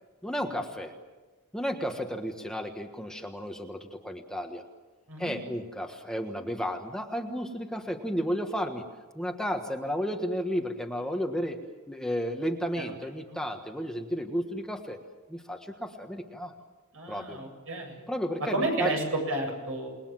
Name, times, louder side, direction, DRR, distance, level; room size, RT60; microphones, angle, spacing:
voice 1, 0.2-0.9 1.5-4.6 5.2-8.8 9.1-11.6 11.9-15.0 15.3-16.5 17.1-17.4 18.1-18.9, equal, 5° left, 3 dB, 1.4 m, -33 dB
voice 2, 16.9-18.0 18.5-19.9, right 2 dB, 65° right, 2 dB, 7.7 m, -31 dB
28.5 x 20.5 x 7.5 m, 1.3 s
head